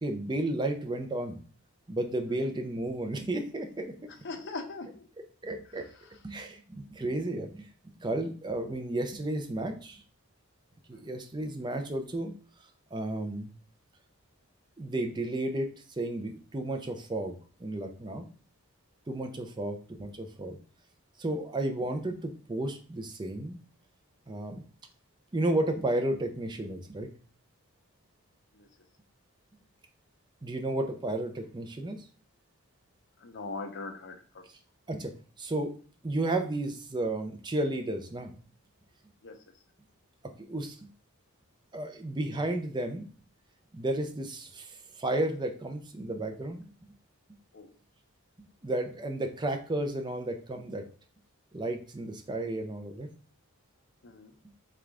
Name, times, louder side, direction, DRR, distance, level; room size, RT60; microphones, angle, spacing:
voice 1, 0.0-1.4 1.9-3.9 5.4-5.9 6.2-7.7 8.0-10.0 10.9-12.3 12.9-13.5 14.8-17.3 17.6-18.3 19.1-20.6 21.2-23.6 24.3-24.6 25.3-27.1 30.4-32.0 34.9-35.7 36.0-38.3 40.2-40.8 41.7-43.1 43.7-46.6 48.6-50.8 51.5-53.1, right 1 dB, 20° right, 5 dB, 0.5 m, -33 dB
voice 2, 4.2-5.0 33.2-34.1 39.2-39.3 47.5-47.7 54.0-54.3, left 3 dB, 50° left, 5 dB, 0.7 m, -39 dB
3.7 x 3.3 x 3.6 m, 0.40 s
head